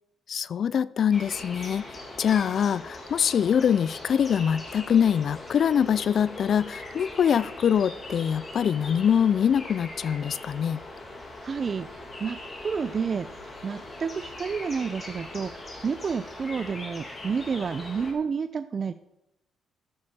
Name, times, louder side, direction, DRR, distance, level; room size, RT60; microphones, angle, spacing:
voice 1, 0.3-1.8 2.2-10.8, left 8 dB, 60° left, 19 dB, 0.3 m, -24 dB
sound 1, 1.1-18.1, left 2 dB, 35° left, 2.7 m, -41 dB
voice 2, 11.4-18.9, right 5 dB, 45° right, 11 dB, 0.4 m, -30 dB
14.0 x 6.4 x 4.2 m, 0.87 s
cardioid pair, 90°, 0 cm